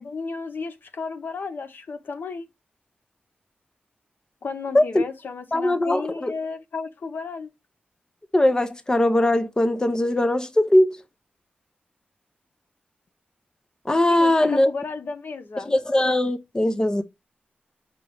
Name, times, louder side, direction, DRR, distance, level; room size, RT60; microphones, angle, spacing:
voice 1, 0.0-2.5 4.4-7.5 14.1-15.7, left 4 dB, 70° left, 0.8 m, -33 dB
voice 2, 5.5-6.3 8.3-11.0 13.9-14.7 15.6-17.0, left 1 dB, 20° left, 0.7 m, -20 dB
5.2 x 2.9 x 3.4 m
wide cardioid pair, 90°, 4 cm